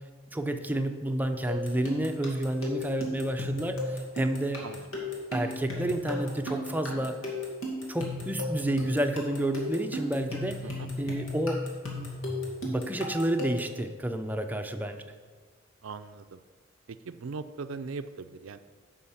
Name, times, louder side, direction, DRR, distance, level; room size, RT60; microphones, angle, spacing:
voice 1, 0.3-4.6 5.3-7.2 7.9-10.6 11.0-11.6 12.6-15.0, right 1 dB, 10° right, 6 dB, 0.6 m, -30 dB
sound 1, 1.5-13.8, left 1 dB, 80° left, 2.3 m, -35 dB
voice 2, 15.8-16.4 16.9-18.6, right 4 dB, 75° right, 10 dB, 0.5 m, -40 dB
9.9 x 5.7 x 7.1 m, 1.5 s
head